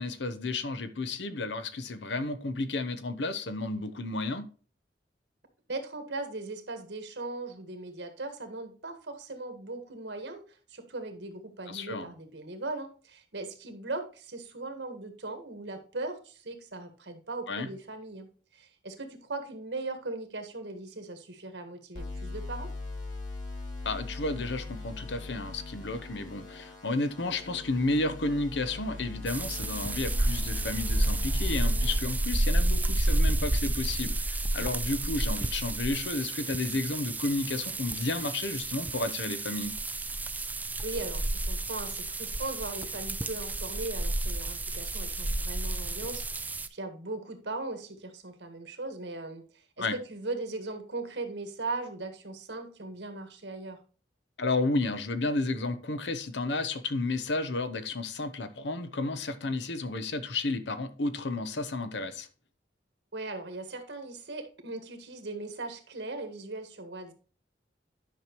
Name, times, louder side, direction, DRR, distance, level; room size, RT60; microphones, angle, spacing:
voice 1, 0.0-4.5 11.7-12.1 17.5-17.7 23.8-39.7 49.8-49.9 54.4-62.3, left 2 dB, 75° left, 0.9 m, -32 dB
voice 2, 5.7-10.4 10.7-22.7 40.8-53.8 63.1-67.1, right 2 dB, 75° right, 1.7 m, -39 dB
sound 1, 21.9-31.9, left 3 dB, 45° left, 3.0 m, -40 dB
sound 2, 29.3-46.7, right 1 dB, 10° right, 0.4 m, -30 dB
10.0 x 6.0 x 3.0 m
head